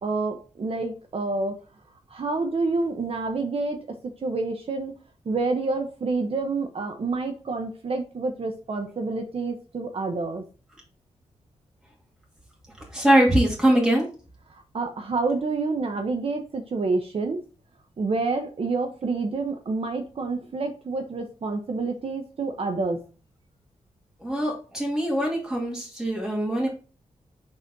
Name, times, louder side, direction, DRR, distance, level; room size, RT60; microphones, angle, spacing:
voice 1, 0.0-1.6 2.1-4.9 5.2-10.4 14.5-17.4 18.0-23.0, right 3 dB, 55° right, 5 dB, 1.0 m, -28 dB
voice 2, 12.9-14.1 24.2-26.7, right 1 dB, 5° right, -3 dB, 2.3 m, -22 dB
6.8 x 4.0 x 4.0 m, 0.36 s
wide cardioid pair, 95°, 12 cm